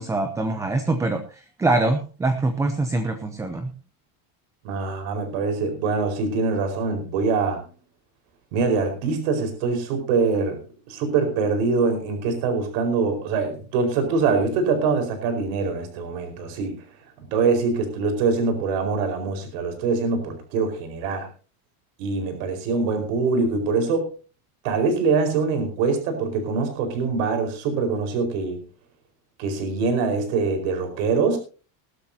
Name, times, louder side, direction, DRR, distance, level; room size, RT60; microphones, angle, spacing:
voice 1, 0.0-3.7, right 2 dB, 5° right, 7 dB, 0.5 m, -24 dB
voice 2, 4.6-7.6 8.5-10.6 10.9-16.8 17.3-21.3 22.0-24.1 24.6-28.6 29.4-31.4, right 4 dB, 60° right, 6 dB, 4.8 m, -24 dB
19.0 x 13.0 x 2.8 m, 0.36 s
cardioid pair, 175°, 44 cm